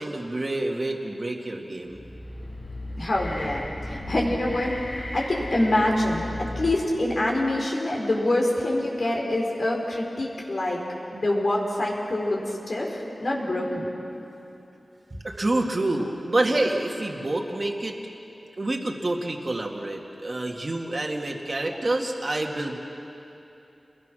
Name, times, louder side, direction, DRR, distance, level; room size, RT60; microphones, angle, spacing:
voice 1, 0.0-2.0 15.1-18.0 18.6-22.8, right 2 dB, 40° right, 0 dB, 2.1 m, -27 dB
sound 1, 1.9-7.2, left 1 dB, 45° left, 5.3 m, -36 dB
voice 2, 3.0-10.8 11.1-12.4 12.7-13.9, left 1 dB, 60° left, -1 dB, 4.7 m, -25 dB
29.0 x 21.5 x 6.3 m, 2.8 s
wide cardioid pair, 80°, 0 cm